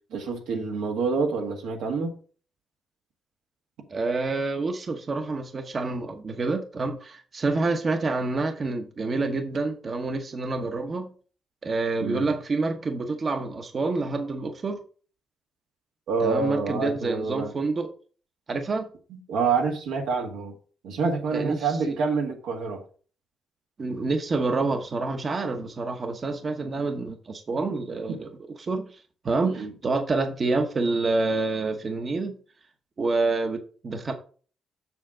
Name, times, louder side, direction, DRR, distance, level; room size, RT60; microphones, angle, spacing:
voice 1, 0.1-2.1 12.0-12.3 16.1-17.5 19.1-20.5 20.8-22.8 29.4-29.7, right 4 dB, 85° right, 1.8 m, -27 dB
voice 2, 3.9-11.1 11.6-14.8 16.2-17.9 18.5-18.9 21.3-21.9 23.8-28.3 28.6-32.4 33.0-34.1, right 3 dB, 40° right, 0.9 m, -27 dB
7.1 x 6.5 x 3.7 m
cardioid pair, 90°, 0 cm